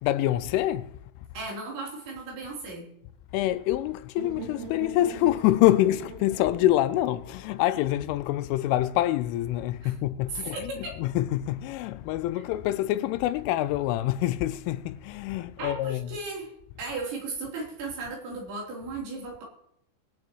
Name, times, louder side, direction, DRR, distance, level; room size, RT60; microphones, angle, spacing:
voice 1, 0.0-0.9 3.3-16.1, left 14 dB, 85° left, 3.1 m, -26 dB
voice 2, 1.3-2.9 9.8-9.9 10.3-11.0 15.6-16.5 16.8-19.4, right 3 dB, 65° right, 5.7 m, -36 dB
sound 1, 4.2-8.1, right 4 dB, 45° right, 4.1 m, -42 dB
23.0 x 9.7 x 3.1 m
omnidirectional pair, 5.6 m